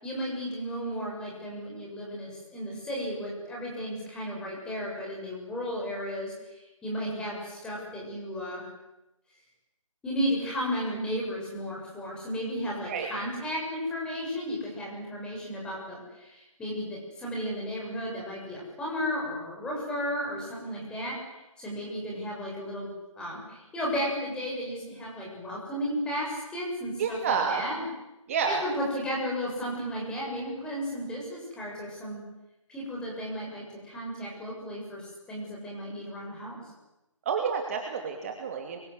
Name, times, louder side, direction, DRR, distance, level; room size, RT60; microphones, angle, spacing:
voice 1, 0.0-8.7 10.0-22.9 23.2-27.8 28.5-32.2 32.7-36.6, equal, 5° left, -3 dB, 7.1 m, -34 dB
voice 2, 27.0-27.6 28.3-28.6 37.3-38.8, right 6 dB, 25° right, 3 dB, 2.7 m, -29 dB
30.0 x 23.5 x 8.0 m, 0.97 s
figure-of-eight pair, 160°, 17 cm